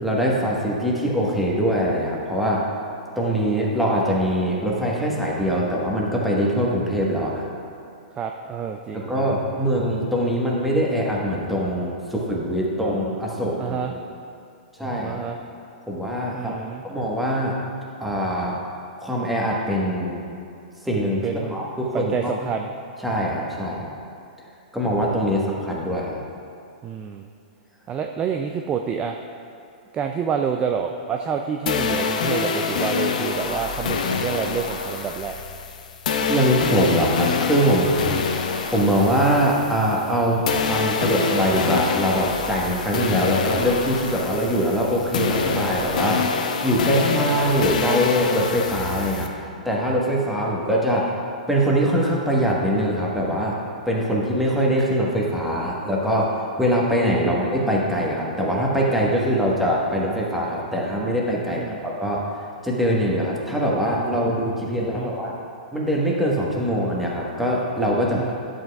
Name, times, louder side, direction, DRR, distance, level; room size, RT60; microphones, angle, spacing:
voice 1, 0.0-2.7 3.2-7.5 8.9-14.0 14.8-15.2 15.9-16.5 16.8-17.6 18.0-18.6 19.0-20.2 20.8-22.3 23.0-23.9 24.7-26.2 36.3-37.9 38.6-46.2 46.6-51.2 51.5-53.6 53.9-56.3 56.6-65.4 65.7-68.3, equal, ahead, -4 dB, 1.3 m, -23 dB
voice 2, 8.2-9.3 13.6-13.9 15.0-15.4 16.3-16.8 21.2-21.6 21.9-22.7 26.8-27.3 27.9-29.2 29.9-35.3 38.0-38.3 61.5-61.8 64.9-65.1 68.1-68.3, right 7 dB, 20° right, 4 dB, 0.3 m, -28 dB
sound 1, 31.7-40.2 40.5-49.3, left 5 dB, 60° left, 0.7 m, -26 dB
11.0 x 7.5 x 2.3 m, 2.6 s
hypercardioid pair, 115°, 5 cm